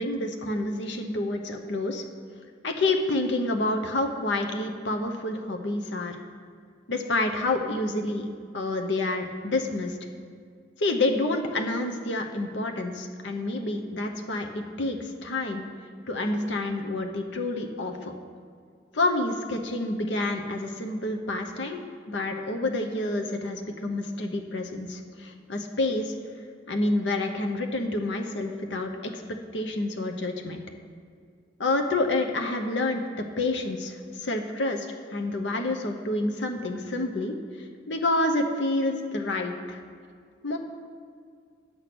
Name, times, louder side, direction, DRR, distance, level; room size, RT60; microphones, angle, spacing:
voice 1, 0.0-2.0 2.6-6.2 6.9-8.3 8.5-10.0 10.8-15.7 16.1-18.1 18.9-26.1 26.7-29.2 29.5-30.6 31.6-39.8 40.4-40.6, left 2 dB, 75° left, 4 dB, 0.9 m, -28 dB
9.5 x 6.8 x 6.0 m, 2.2 s
head